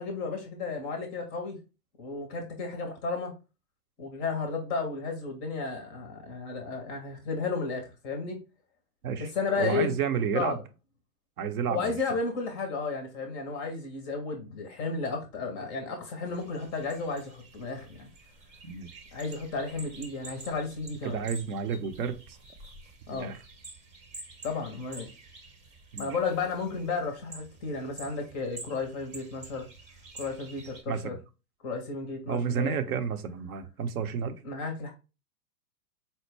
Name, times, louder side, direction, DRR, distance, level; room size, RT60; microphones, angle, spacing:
voice 1, 0.0-1.6 2.0-3.3 4.0-8.4 9.2-10.6 11.7-18.1 19.1-21.2 23.1-23.3 24.4-25.1 26.0-29.7 30.1-31.2 31.6-33.0 34.4-34.9, left 4 dB, 20° left, 0.5 m, -33 dB
voice 2, 9.6-10.6 11.4-12.0 18.6-19.0 21.0-22.2 23.1-23.4 25.9-26.1 30.9-31.2 32.3-34.4, right 7 dB, 60° right, 0.7 m, -31 dB
sound 1, 16.2-30.8, right 2 dB, 20° right, 0.7 m, -49 dB
4.2 x 2.0 x 3.2 m
hypercardioid pair, 115°, 48 cm